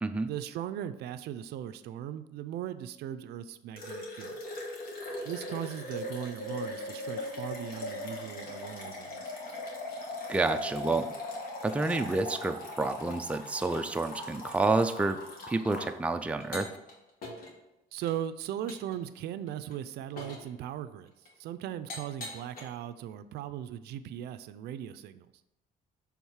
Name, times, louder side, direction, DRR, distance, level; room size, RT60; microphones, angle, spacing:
voice 1, 0.3-4.4 5.2-9.3 17.9-21.1 21.4-25.3, right 10 dB, 75° right, 12 dB, 0.4 m, -38 dB
sound 1, 3.8-15.9 16.4-16.9 17.2-17.5 18.0-18.1 18.7-19.0 19.5-19.7 20.2-20.5 21.3-21.4 21.9-22.6, left 1 dB, 60° left, 1.8 m, -40 dB
voice 2, 10.3-11.1 11.6-15.2 15.5-16.7, right 3 dB, 5° right, 7 dB, 0.4 m, -29 dB
7.2 x 3.6 x 4.6 m, 0.93 s
cardioid pair, 110°, 17 cm